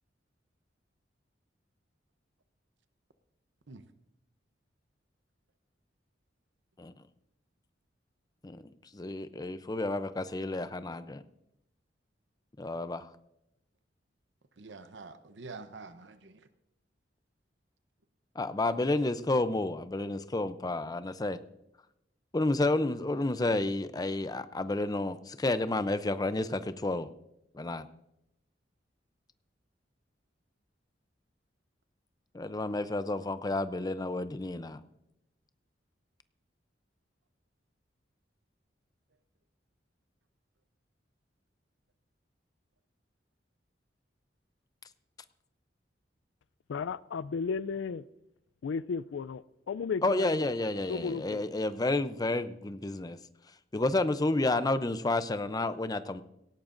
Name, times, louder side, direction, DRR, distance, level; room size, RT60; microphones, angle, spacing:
voice 1, 8.9-11.2 12.6-13.1 18.4-21.4 22.3-27.1 27.5-27.9 32.3-34.8 50.0-53.2 53.7-56.2, left 2 dB, 20° left, 12 dB, 0.5 m, -30 dB
voice 2, 14.6-16.5, right 4 dB, 75° right, 10 dB, 0.8 m, -47 dB
voice 3, 46.7-48.1 48.6-50.5 50.9-51.5, left 5 dB, 85° left, 19 dB, 0.4 m, -34 dB
18.0 x 16.0 x 2.6 m, 0.85 s
head